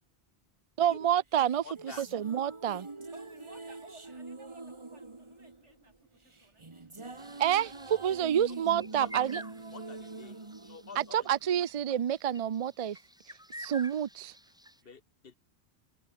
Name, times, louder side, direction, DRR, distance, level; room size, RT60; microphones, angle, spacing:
voice 1, 0.8-2.9 7.4-9.4 11.0-13.0 13.6-14.3, right 10 dB, 50° right, 0.4 m, -28 dB
sound 1, 1.4-11.8, right 3 dB, 25° right, 1.5 m, -45 dB
voice 2, 1.6-2.0 9.0-9.1 9.7-10.4 10.6-11.1 14.8-15.4, left 5 dB, 55° left, 1.4 m, -47 dB
voice 3, 3.1-7.5, right 2 dB, 85° right, 5.6 m, -57 dB
sound 2, 7.2-14.8, equal, 5° right, 4.3 m, -50 dB
omnidirectional pair, 1.2 m